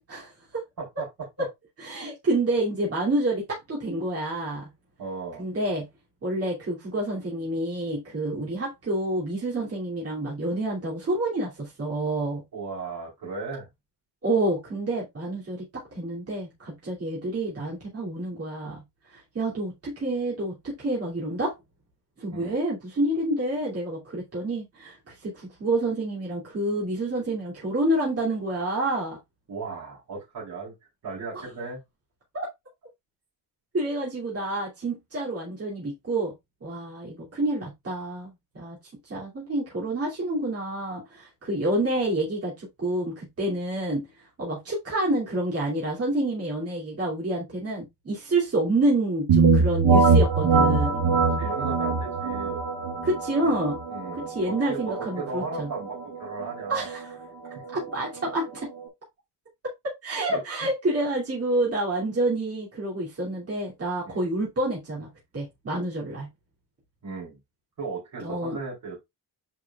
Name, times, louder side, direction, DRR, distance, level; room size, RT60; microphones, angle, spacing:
voice 1, 0.1-0.6 1.4-1.5 1.8-4.7 5.4-5.8 6.2-12.4 14.2-18.8 19.1-21.5 22.2-29.2 31.3-31.4 32.3-32.5 33.7-36.3 36.6-38.8 39.0-44.1 44.4-51.0 53.0-53.8 54.2-55.7 56.7-57.1 57.7-58.6 60.0-66.3 68.2-68.6, right 1 dB, 30° right, 2.8 m, -28 dB
voice 2, 5.0-5.4 12.5-13.7 22.3-22.6 29.5-30.7 31.0-31.8 51.1-52.6 53.9-56.9 57.5-57.6 60.3-60.4 64.0-64.3 67.0-67.4 67.8-69.0, right 4 dB, 50° right, 3.6 m, -36 dB
sound 1, 49.3-58.9, right 4 dB, 85° right, 2.3 m, -24 dB
8.9 x 4.9 x 2.4 m
wide cardioid pair, 175°, 45 cm